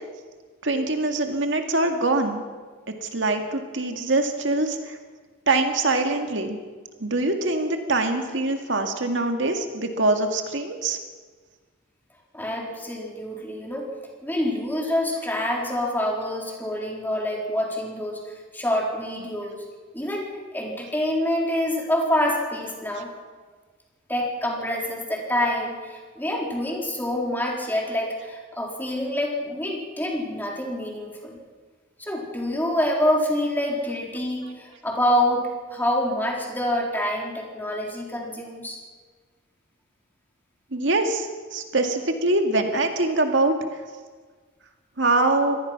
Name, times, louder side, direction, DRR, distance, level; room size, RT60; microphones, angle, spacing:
voice 1, 0.6-2.4 3.0-5.0 5.5-6.6 7.0-11.0 40.7-43.5 45.0-45.6, right 2 dB, 70° right, 5 dB, 2.1 m, -23 dB
voice 2, 12.3-13.9 14.2-18.2 18.5-19.6 19.9-23.1 24.1-31.4 32.0-38.8, left 1 dB, 10° left, -1 dB, 4.0 m, -26 dB
25.5 x 18.0 x 6.0 m, 1.4 s
head